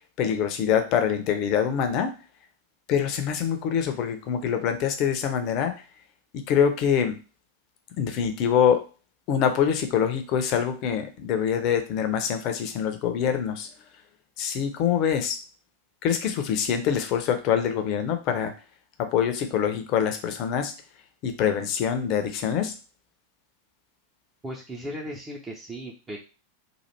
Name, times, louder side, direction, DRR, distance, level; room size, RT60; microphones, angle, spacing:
voice 1, 0.2-2.1 2.9-5.8 6.5-7.1 8.0-8.8 9.3-13.7 14.4-15.4 16.0-18.5 19.0-20.7 21.2-22.7, left 8 dB, 40° left, 7 dB, 0.7 m, -25 dB
voice 2, 24.4-26.2, equal, 15° right, -1 dB, 0.7 m, -36 dB
3.2 x 2.5 x 4.2 m, 0.31 s
figure-of-eight pair, 90°, 0 cm